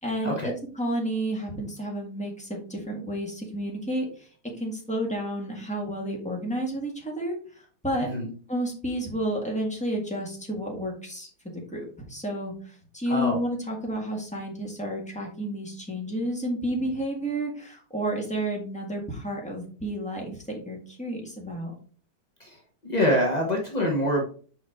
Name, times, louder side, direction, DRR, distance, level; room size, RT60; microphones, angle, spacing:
voice 1, 0.0-4.3 4.6-8.1 8.5-11.3 11.7-21.7, right 1 dB, 5° left, -1 dB, 1.4 m, -31 dB
voice 2, 13.1-13.4 22.4-24.2, equal, 55° left, 0 dB, 0.4 m, -25 dB
6.1 x 4.8 x 3.6 m, 0.42 s
omnidirectional pair, 2.4 m